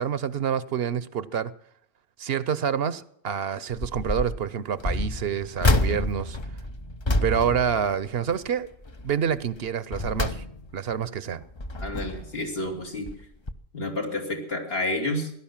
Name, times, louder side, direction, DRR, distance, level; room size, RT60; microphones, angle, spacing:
voice 1, 0.0-1.5 2.2-6.4 7.2-8.7 9.0-10.4 10.7-11.4, right 8 dB, 70° right, 1.0 m, -27 dB
sound 1, 3.7-4.4 4.8-8.5 8.8-9.2 9.7-10.9 11.4-12.4 13.1-13.2 13.5-13.6, left 2 dB, 30° left, 0.8 m, -28 dB
voice 2, 11.8-13.1 13.7-15.3, left 1 dB, 65° left, 3.5 m, -30 dB
17.5 x 11.0 x 7.3 m
omnidirectional pair, 1.1 m